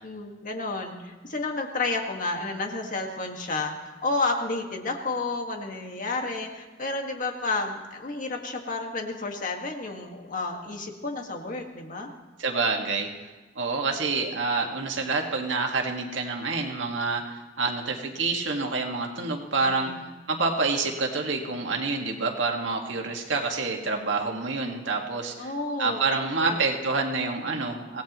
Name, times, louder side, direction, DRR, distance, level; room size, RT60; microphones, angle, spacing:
voice 1, 0.0-12.1 19.6-20.0 25.4-26.6, left 3 dB, 45° left, 3 dB, 1.7 m, -31 dB
voice 2, 12.4-13.1 13.6-19.9 20.3-25.5 25.8-28.0, right 3 dB, 85° right, 2 dB, 1.9 m, -27 dB
24.5 x 17.0 x 3.1 m, 1.3 s
head